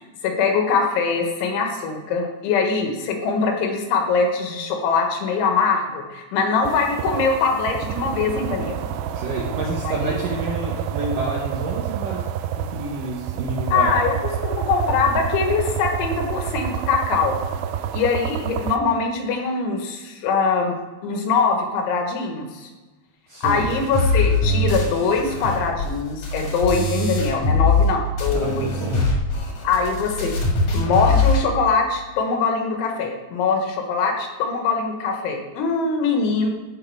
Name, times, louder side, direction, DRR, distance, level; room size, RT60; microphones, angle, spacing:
voice 1, 0.2-8.8 9.9-10.2 13.7-14.2 14.4-17.4 17.9-20.8 21.0-22.7 23.4-28.7 29.6-30.3 30.7-36.5, left 4 dB, 85° left, 3 dB, 3.9 m, -22 dB
sound 1, 6.6-18.8, right 8 dB, 85° right, 3.1 m, -28 dB
voice 2, 9.1-12.3 12.6-13.9 23.3-23.7 28.3-29.2, right 2 dB, 70° right, -2 dB, 2.1 m, -29 dB
sound 2, 23.4-27.9 28.2-31.4, left 3 dB, 55° left, 2.4 m, -22 dB
15.5 x 5.7 x 4.8 m, 1.2 s
omnidirectional pair, 5.5 m